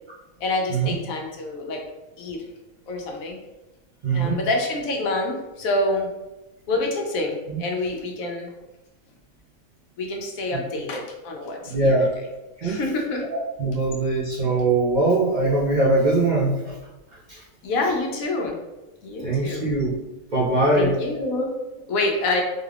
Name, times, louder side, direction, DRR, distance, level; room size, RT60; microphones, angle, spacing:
voice 1, 0.4-1.8 2.2-2.4 2.9-3.4 4.1-6.1 6.7-8.5 10.0-11.9 12.6-13.2 17.6-18.6 19.0-19.6 20.8-21.5 21.9-22.4, left 2 dB, 80° left, 1 dB, 1.2 m, -27 dB
voice 2, 4.0-4.4 7.5-7.6 10.5-10.6 11.6-12.1 12.6-12.8 13.3-16.8 17.3-17.4 19.2-19.9 20.3-20.9, right 2 dB, 45° right, -6 dB, 0.6 m, -21 dB
3.7 x 2.3 x 3.3 m, 1.1 s
omnidirectional pair, 1.5 m